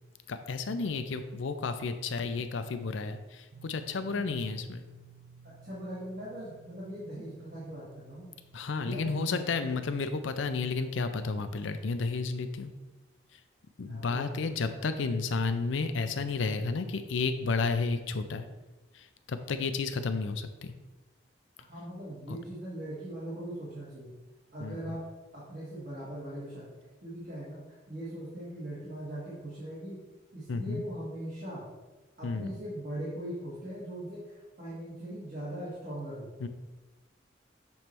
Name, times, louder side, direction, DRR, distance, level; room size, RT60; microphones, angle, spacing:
voice 1, 0.3-4.8 8.5-12.7 13.3-13.4 13.8-18.5 18.9-20.7 22.3-22.4 24.6-24.8 30.5-30.8 32.2-32.5 36.4-36.5, left 4 dB, 80° left, 10 dB, 0.5 m, -32 dB
sound 1, 3.5-8.6, right 5 dB, 70° right, 0.5 m, -55 dB
voice 2, 4.0-4.4 5.4-8.3 8.7-9.5 13.9-14.7 21.7-24.1 24.5-25.0 25.3-26.7 27.0-27.6 27.9-30.0 30.3-31.6 32.2-36.3, right 1 dB, 45° right, -9 dB, 1.6 m, -40 dB
6.9 x 3.2 x 4.4 m, 1.2 s
head